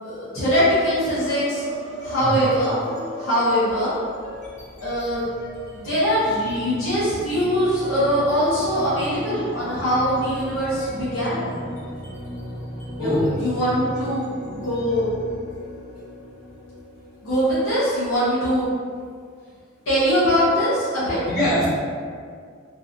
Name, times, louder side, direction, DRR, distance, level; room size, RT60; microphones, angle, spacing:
voice 1, 0.0-1.6 2.0-2.7 3.2-3.9 4.8-5.2 5.7-11.5 13.0-15.1 17.2-18.7 19.9-21.2, equal, 80° left, -11 dB, 0.9 m, -22 dB
sound 1, 0.9-5.8, equal, 30° right, 0.5 m, -37 dB
sound 2, 1.1-1.6 1.9-18.5, equal, 40° left, 0.7 m, -37 dB
voice 2, 21.3-21.7, equal, ahead, -16 dB, 1.0 m, -22 dB
2.7 x 2.0 x 2.5 m, 2.1 s
head